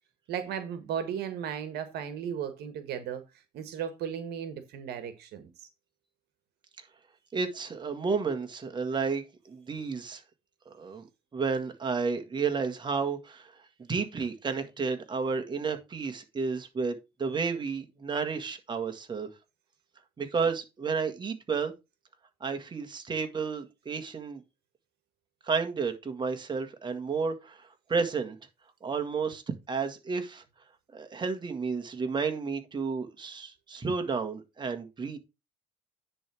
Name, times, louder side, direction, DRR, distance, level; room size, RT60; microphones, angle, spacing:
voice 1, 0.3-3.2 3.5-5.7, right 8 dB, 75° right, 1.4 m, -35 dB
voice 2, 7.3-10.2 10.7-11.1 11.3-13.5 13.9-19.3 20.2-21.7 22.4-24.4 25.4-28.4 28.8-29.4 29.7-30.4 30.9-35.2, right 5 dB, 25° right, 1.7 m, -31 dB
10.0 x 3.5 x 6.0 m
cardioid pair, 110°, 17 cm